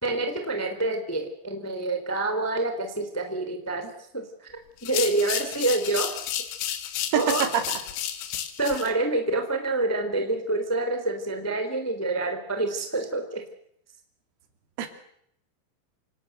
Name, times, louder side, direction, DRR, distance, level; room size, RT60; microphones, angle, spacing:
voice 1, 0.0-4.5 4.8-6.2 7.1-7.5 8.6-13.4, right 2 dB, 5° left, 6 dB, 1.8 m, -27 dB
sound 1, 4.8-8.9, left 11 dB, 80° left, 4.4 m, -32 dB
voice 2, 7.1-7.6 14.8-14.9, right 9 dB, 85° right, 7 dB, 5.4 m, -24 dB
27.5 x 18.5 x 7.9 m, 0.71 s
omnidirectional pair, 6.0 m